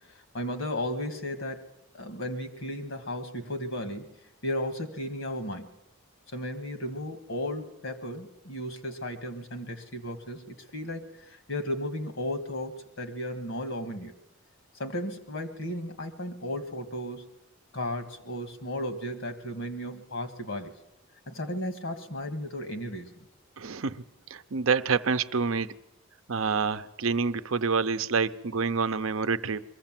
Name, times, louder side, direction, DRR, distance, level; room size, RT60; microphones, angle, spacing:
voice 1, 0.1-1.7 1.9-4.2 4.4-5.7 6.3-14.1 14.8-17.3 17.7-20.8 21.3-23.1, left 1 dB, 65° left, 7 dB, 1.7 m, -35 dB
voice 2, 23.6-24.0 24.3-25.7 26.3-29.6, right 5 dB, 75° right, 11 dB, 0.7 m, -27 dB
23.0 x 15.0 x 7.5 m, 0.94 s
head